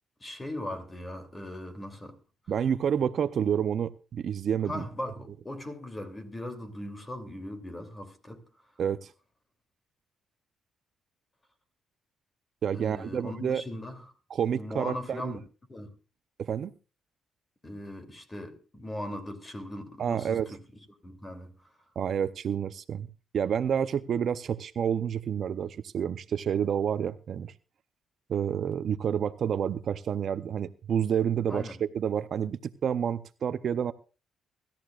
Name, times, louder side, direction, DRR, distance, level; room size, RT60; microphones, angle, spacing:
voice 1, 0.2-2.2 3.0-3.1 4.6-8.5 12.7-14.1 14.5-15.4 15.7-15.9 17.6-20.6 21.0-21.7 31.5-31.8, left 1 dB, 20° left, 2.9 m, -39 dB
voice 2, 2.5-4.8 8.8-9.1 12.6-13.6 14.3-15.4 16.4-16.7 20.0-20.6 22.0-23.1 23.3-27.5 28.3-33.9, right 8 dB, 60° right, 0.6 m, -29 dB
23.5 x 13.5 x 2.4 m
cardioid pair, 90°, 0 cm